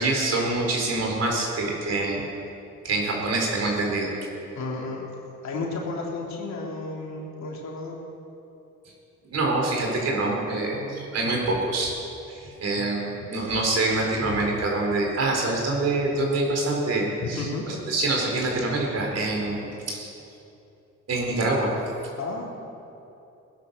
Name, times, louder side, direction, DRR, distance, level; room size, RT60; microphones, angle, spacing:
voice 1, 0.0-2.2 2.8-4.1 9.3-11.9 12.6-20.1 21.1-21.7, right 2 dB, 55° right, 0 dB, 4.2 m, -25 dB
voice 2, 4.5-5.0 5.4-7.9 10.7-11.0 11.2-11.3 12.7-13.3 17.2-17.6 22.2-22.6, left 3 dB, 65° left, -2 dB, 3.4 m, -33 dB
18.5 x 10.0 x 6.8 m, 2.8 s
cardioid pair, 90°, 30 cm